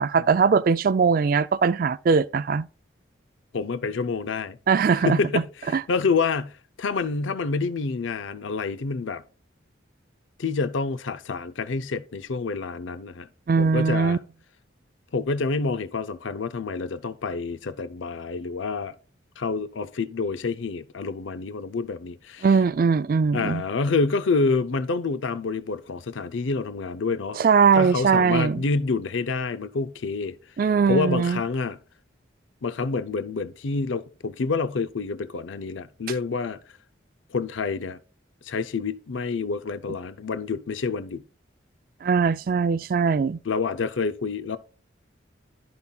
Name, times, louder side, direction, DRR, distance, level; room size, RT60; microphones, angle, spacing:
voice 1, 0.0-2.7 4.7-5.4 5.7-5.8 13.5-14.2 22.4-23.6 27.4-28.6 30.6-31.4 42.0-43.4, right 5 dB, 45° right, 0.3 m, -21 dB
voice 2, 3.5-4.6 5.0-9.2 10.4-13.3 13.6-14.2 15.1-18.9 19.4-22.5 23.3-27.4 27.7-30.3 30.9-31.8 32.6-36.6 37.3-38.0 38.4-41.2 43.4-44.6, left 4 dB, 80° left, 0.6 m, -28 dB
14.5 x 5.7 x 2.3 m
head